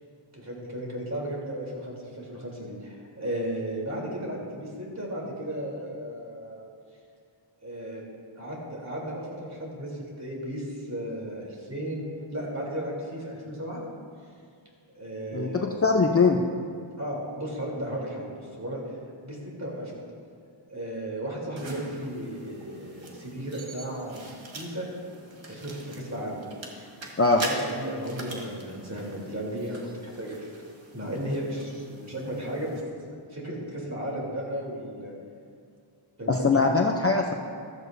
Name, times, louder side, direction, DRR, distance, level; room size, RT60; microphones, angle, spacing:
voice 1, 0.3-6.6 7.6-8.0 8.3-12.1 12.3-13.8 14.9-15.8 17.0-18.8 19.2-19.9 20.7-24.9 25.4-26.4 26.7-26.9 27.3-30.5 30.9-32.8 33.1-35.1 36.2-36.8, right 1 dB, 30° right, -3 dB, 3.3 m, -35 dB
voice 2, 15.3-16.4 27.2-27.4 36.3-37.3, left 4 dB, 30° left, 2 dB, 0.6 m, -22 dB
sound 1, 21.6-32.8, right 2 dB, 65° right, 1.7 m, -43 dB
14.5 x 14.0 x 2.7 m, 2.2 s
wide cardioid pair, 110°, 49 cm